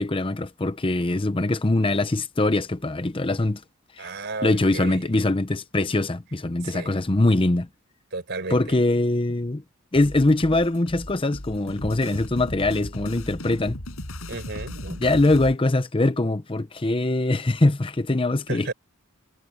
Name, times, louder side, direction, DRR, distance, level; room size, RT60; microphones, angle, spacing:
voice 1, 0.0-3.6 4.0-4.1 4.4-7.7 8.5-9.6 9.9-13.8 15.0-18.7, left 2 dB, 25° left, 0.7 m, -22 dB
voice 2, 4.0-5.0 6.6-6.9 8.1-8.6 14.3-15.1 18.5-18.7, right 3 dB, 55° right, 4.5 m, -33 dB
sound 1, 9.9-15.6, left 1 dB, 85° left, 5.0 m, -37 dB
head